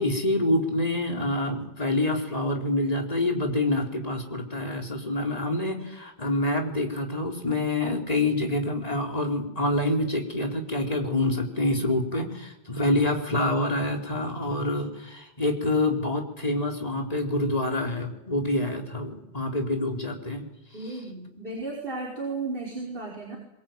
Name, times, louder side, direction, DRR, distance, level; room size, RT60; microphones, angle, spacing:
voice 1, 0.0-20.5, left 1 dB, 35° left, 2 dB, 4.0 m, -27 dB
voice 2, 20.7-23.4, right 3 dB, 50° right, -2 dB, 5.3 m, -34 dB
23.5 x 22.0 x 9.2 m, 0.92 s
omnidirectional pair, 1.2 m